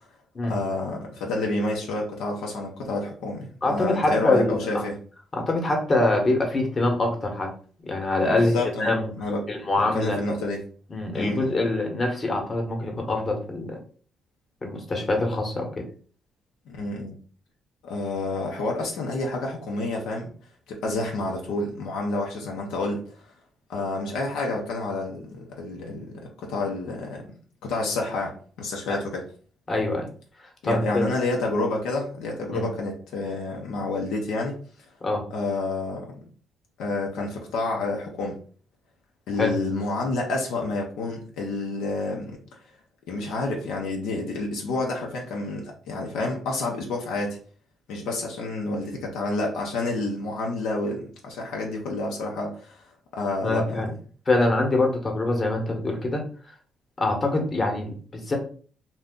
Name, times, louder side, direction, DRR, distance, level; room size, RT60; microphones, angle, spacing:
voice 1, 0.5-5.0 8.5-8.9 9.2-9.5 9.9-10.6 11.1-11.5 16.7-17.2 17.8-20.3 20.7-23.1 23.7-27.3 27.6-29.2 30.6-34.6 35.3-36.2 36.8-38.4 39.3-42.4 43.1-47.4 47.9-52.8 53.1-54.0, left 2 dB, 90° left, 0 dB, 0.7 m, -29 dB
voice 2, 3.6-4.8 5.3-7.5 7.8-9.1 9.5-10.2 10.9-13.8 14.6-15.8 28.9-29.0 29.7-30.1 30.4-31.0 32.5-32.7 35.0-35.2 39.4-39.5 53.4-53.9 54.3-56.2 57.0-58.4, left 2 dB, 35° left, 2 dB, 0.9 m, -24 dB
2.6 x 2.3 x 3.6 m, 0.43 s
cardioid pair, 90°, 0 cm